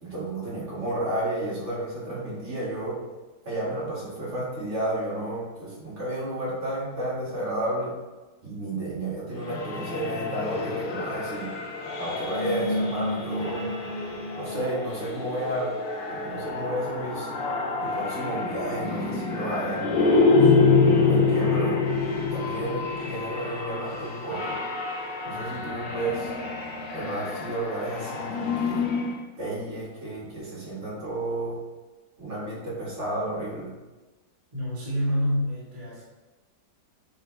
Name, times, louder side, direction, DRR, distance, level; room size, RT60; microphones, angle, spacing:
voice 1, 0.0-2.9 3.5-7.9 8.4-11.5 12.0-13.6 14.4-15.7 16.1-17.3 17.8-20.5 21.0-21.8 22.3-24.6 25.2-26.3 26.9-28.8 29.4-31.6 32.2-33.7, right 1 dB, 40° right, -7 dB, 2.5 m, -32 dB
sound 1, 9.4-29.2, left 4 dB, 90° left, 1.6 m, -26 dB
voice 2, 34.5-36.0, equal, 25° right, -8 dB, 1.5 m, -27 dB
8.3 x 3.9 x 3.4 m, 1.2 s
omnidirectional pair, 1.9 m